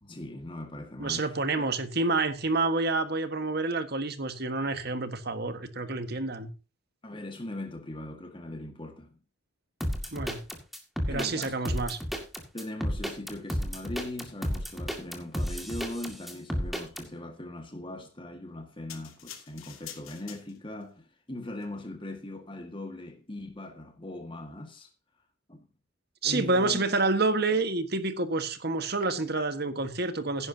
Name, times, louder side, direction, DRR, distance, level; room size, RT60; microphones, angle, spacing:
voice 1, 0.0-1.4 7.0-9.2 11.1-11.6 12.5-24.9 25.5-25.7 26.2-26.9, left 1 dB, 25° left, 1.8 m, -40 dB
voice 2, 1.0-6.5 10.1-10.4 11.1-12.0 26.2-30.5, right 3 dB, 50° right, 1.6 m, -28 dB
sound 1, 9.8-17.0, equal, ahead, 2.2 m, -32 dB
sound 2, 18.9-20.9 21.5-21.7, left 10 dB, 80° left, 2.8 m, -46 dB
16.5 x 11.0 x 2.9 m
head